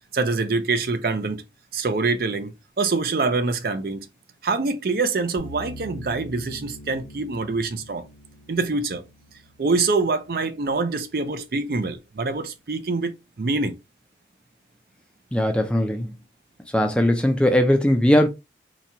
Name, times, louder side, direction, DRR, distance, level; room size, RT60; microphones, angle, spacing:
voice 1, 0.1-1.4 1.7-4.1 4.4-8.1 8.5-9.0 9.6-13.8, right 3 dB, 55° right, 0.4 m, -25 dB
sound 1, 5.4-10.5, equal, 60° left, 0.8 m, -43 dB
voice 2, 15.3-16.1 16.7-18.3, left 1 dB, 5° left, 0.4 m, -19 dB
4.0 x 2.2 x 2.8 m
head